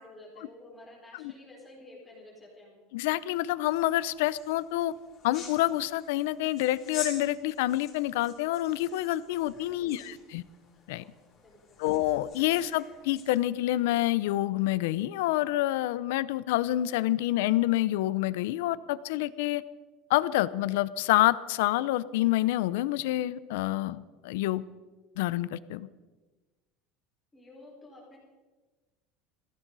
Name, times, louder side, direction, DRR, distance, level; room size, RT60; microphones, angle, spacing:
voice 1, 0.0-2.8 9.7-9.9 11.4-11.8 27.3-28.2, left 1 dB, 10° left, -4 dB, 4.6 m, -51 dB
voice 2, 2.9-4.9 5.2-10.4 10.9-11.0 11.8-19.6 20.1-24.6 25.2-25.9, left 15 dB, 80° left, 17 dB, 0.6 m, -27 dB
sound 1, 3.6-13.3, left 5 dB, 30° left, 6.1 m, -47 dB
20.5 x 16.0 x 4.1 m, 1.2 s
cardioid pair, 165°, 0 cm